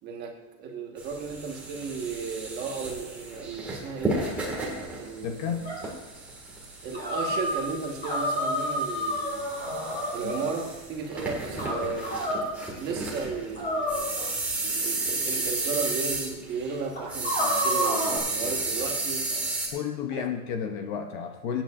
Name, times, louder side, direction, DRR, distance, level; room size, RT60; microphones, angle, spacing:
voice 1, 0.0-4.2 4.9-5.7 6.8-9.6 10.1-12.1 12.8-19.6 20.1-20.2, right 5 dB, 25° right, 2 dB, 1.4 m, -35 dB
sound 1, 1.0-16.8 17.1-19.7, right 2 dB, 5° right, 1.8 m, -33 dB
voice 2, 5.2-5.6 10.2-10.3 19.7-21.6, left 8 dB, 35° left, 6 dB, 0.6 m, -31 dB
sound 2, 5.6-5.9 6.9-7.7 8.0-10.5 11.6-12.5 13.6-14.5 15.4-15.5 16.1-16.2 16.9-18.2, equal, 20° left, 3.9 m, -29 dB
23.5 x 9.0 x 2.5 m, 1.1 s
supercardioid pair, 175°, 39 cm